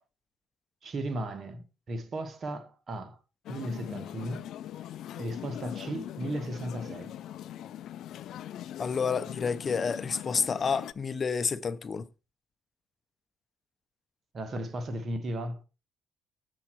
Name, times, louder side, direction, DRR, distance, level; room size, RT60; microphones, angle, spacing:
voice 1, 0.8-3.2 3.5-4.5 5.2-7.2 14.3-15.6, right 1 dB, 50° right, 1.4 m, -35 dB
sound 1, 3.5-10.9, left 11 dB, 75° left, 0.4 m, -41 dB
voice 2, 8.8-12.1, left 5 dB, 40° left, 0.7 m, -29 dB
7.2 x 7.0 x 4.5 m
cardioid pair, 90°, 0 cm